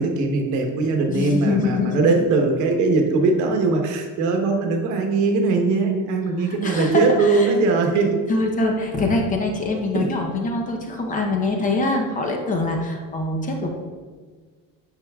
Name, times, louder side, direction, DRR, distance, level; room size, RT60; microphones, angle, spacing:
voice 1, 0.0-8.2 9.9-10.1, right 3 dB, 50° right, 3 dB, 1.1 m, -20 dB
voice 2, 1.1-2.0 6.4-7.5 8.3-13.7, left 2 dB, 20° left, 2 dB, 0.7 m, -24 dB
9.4 x 6.5 x 2.3 m, 1.5 s
cardioid pair, 175°, 37 cm